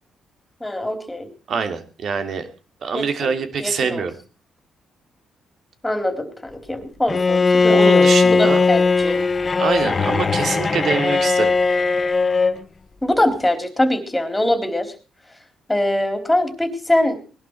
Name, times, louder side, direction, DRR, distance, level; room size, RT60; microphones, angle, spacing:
voice 1, 0.6-1.3 2.9-3.3 3.6-4.0 5.8-9.2 13.0-14.9 15.7-17.2, left 1 dB, 10° left, 7 dB, 3.7 m, -23 dB
voice 2, 1.5-2.5 2.8-4.1 7.7-8.6 9.6-11.5, right 5 dB, 60° right, 8 dB, 2.8 m, -24 dB
Bowed string instrument, 7.1-12.6, left 4 dB, 30° left, 1.0 m, -18 dB
20.0 x 11.5 x 4.7 m, 0.34 s
cardioid pair, 90°, 0 cm